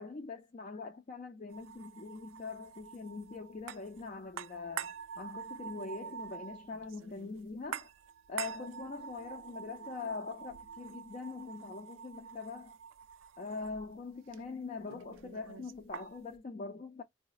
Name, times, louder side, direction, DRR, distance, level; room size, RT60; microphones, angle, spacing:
voice 1, 0.0-7.9 8.3-12.7 13.4-17.0, left 4 dB, 35° left, 0.4 m, -43 dB
sound 1, 1.5-16.4, right 8 dB, 70° right, 0.3 m, -47 dB
3.9 x 2.0 x 2.3 m
head